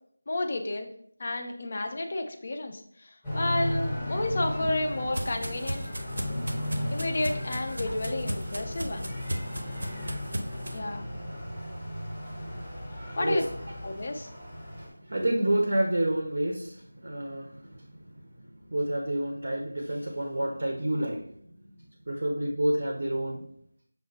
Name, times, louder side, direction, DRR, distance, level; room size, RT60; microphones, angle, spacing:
voice 1, 0.3-0.9 1.2-5.8 6.9-9.1 10.7-11.1 13.2-13.4 13.8-14.3, left 2 dB, 25° left, 3 dB, 0.3 m, -31 dB
sound 1, 3.2-14.9, left 1 dB, ahead, 0.7 m, -35 dB
sound 2, 4.2-10.8, equal, 80° right, 0.7 m, -37 dB
voice 2, 14.7-21.4 22.1-23.4, right 1 dB, 35° right, 1 dB, 0.5 m, -29 dB
5.9 x 2.0 x 3.8 m, 0.65 s
figure-of-eight pair, 180°, 0 cm